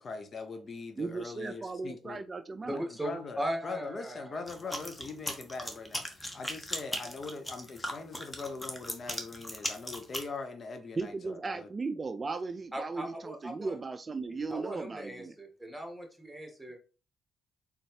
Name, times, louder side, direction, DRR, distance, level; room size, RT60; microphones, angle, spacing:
voice 1, 0.0-2.2 2.6-11.7, left 4 dB, 50° left, 0.6 m, -42 dB
voice 2, 1.0-2.8 11.0-15.3, right 4 dB, 35° right, 0.3 m, -36 dB
voice 3, 2.7-4.8 12.7-13.8 14.5-16.8, right 1 dB, ahead, 1.7 m, -38 dB
sound 1, 4.5-10.3, left 1 dB, 15° left, 1.1 m, -38 dB
4.0 x 3.5 x 3.2 m
hypercardioid pair, 55°, 0 cm